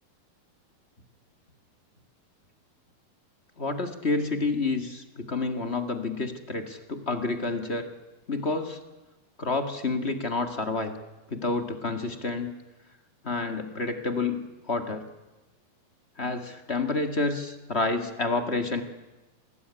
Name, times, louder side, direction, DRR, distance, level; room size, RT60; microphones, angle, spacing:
voice 1, 3.6-7.9 8.3-8.8 9.4-10.9 11.3-12.5 13.2-15.1 16.2-18.8, left 3 dB, 30° left, 8 dB, 1.2 m, -29 dB
27.5 x 20.5 x 9.9 m, 1.1 s
omnidirectional pair, 4.5 m